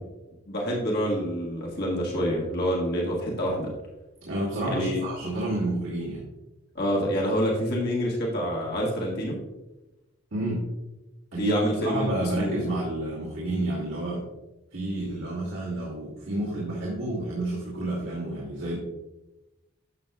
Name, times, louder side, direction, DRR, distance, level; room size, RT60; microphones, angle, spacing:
voice 1, 0.5-3.7 4.6-5.0 6.7-9.4 11.4-12.8, equal, 50° left, -3 dB, 1.6 m, -27 dB
voice 2, 4.3-6.2 10.3-10.7 11.3-11.6 11.8-14.2 14.7-18.8, right 1 dB, 70° right, -6 dB, 2.4 m, -30 dB
11.5 x 7.2 x 2.3 m, 1.0 s
head